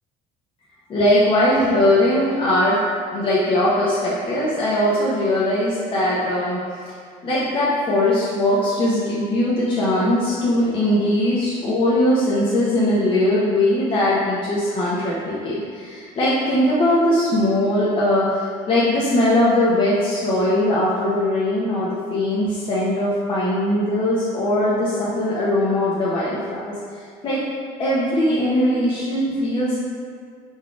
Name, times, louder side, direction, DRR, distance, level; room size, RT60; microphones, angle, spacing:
voice 1, 0.9-2.8 3.1-6.8 7.2-26.7 27.2-27.4 27.8-29.8, left 1 dB, 35° left, -7 dB, 0.8 m, -20 dB
4.8 x 4.0 x 2.4 m, 2.1 s
cardioid pair, 130°, 15 cm